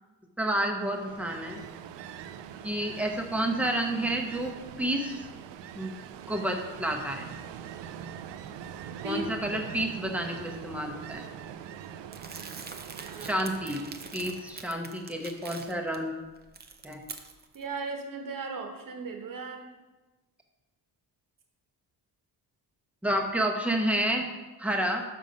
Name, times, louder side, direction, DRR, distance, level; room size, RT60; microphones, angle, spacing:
voice 1, 0.4-1.6 2.6-5.2 5.8-5.9 6.3-7.3 9.0-11.3 13.2-13.8 14.1-16.1 16.8-17.0 23.0-24.3 24.6-25.0, right 1 dB, 5° right, 2 dB, 0.8 m, -30 dB
Ocean, 0.7-14.8, right 9 dB, 85° right, 0.5 m, -43 dB
voice 2, 9.0-9.6 13.1-13.4 17.5-19.7, right 3 dB, 50° right, 3 dB, 1.2 m, -36 dB
Crumpling crinkling, 12.1-16.0 16.4-17.6, right 4 dB, 25° right, 0.5 m, -44 dB
6.5 x 5.4 x 5.1 m, 1.2 s
wide cardioid pair, 140°, 41 cm